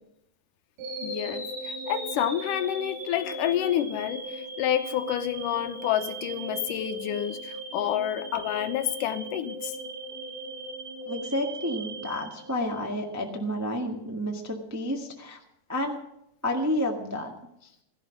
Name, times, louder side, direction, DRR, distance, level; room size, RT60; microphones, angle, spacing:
sound 1, 0.8-12.9, right 2 dB, 85° right, 6.5 m, -38 dB
voice 1, 1.0-9.8, left 11 dB, 90° left, 2.4 m, -29 dB
voice 2, 11.0-15.4 15.7-16.0 16.4-17.3, left 1 dB, 15° right, 0.6 m, -30 dB
17.0 x 12.5 x 6.0 m
omnidirectional pair, 3.6 m